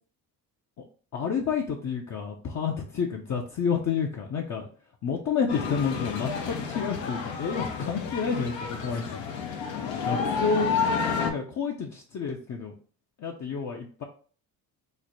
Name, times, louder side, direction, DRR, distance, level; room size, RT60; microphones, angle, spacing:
voice 1, 1.1-4.7 5.0-9.2 9.6-9.7 10.0-10.7 11.2-12.7 13.2-14.0, left 6 dB, 40° left, 0 dB, 0.6 m, -29 dB
sound 1, 5.5-11.3, left 5 dB, 80° left, 0.8 m, -30 dB
3.2 x 2.1 x 3.9 m, 0.43 s
supercardioid pair, 70°, 45 cm